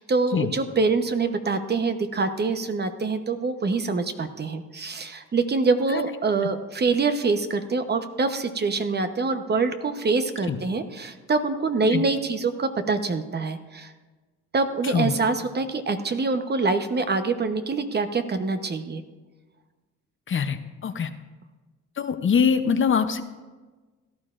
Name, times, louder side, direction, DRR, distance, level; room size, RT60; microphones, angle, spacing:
voice 1, 0.0-13.9 14.5-19.0, right 4 dB, 35° right, 8 dB, 0.9 m, -25 dB
voice 2, 20.3-21.1 22.0-23.2, left 6 dB, 40° left, 9 dB, 0.7 m, -23 dB
17.0 x 12.0 x 2.5 m, 1.3 s
cardioid pair, 90°, 30 cm